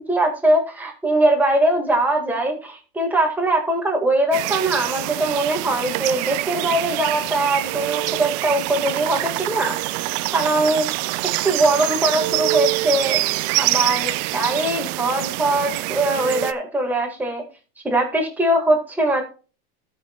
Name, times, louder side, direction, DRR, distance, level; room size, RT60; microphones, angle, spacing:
voice 1, 0.1-9.8 10.3-10.9 11.4-17.4 17.8-19.2, right 1 dB, 5° right, 1 dB, 1.9 m, -21 dB
sound 1, 4.3-16.5, right 19 dB, 45° right, 0.5 m, -25 dB
17.5 x 6.4 x 2.4 m, 0.34 s
supercardioid pair, 165°, 29 cm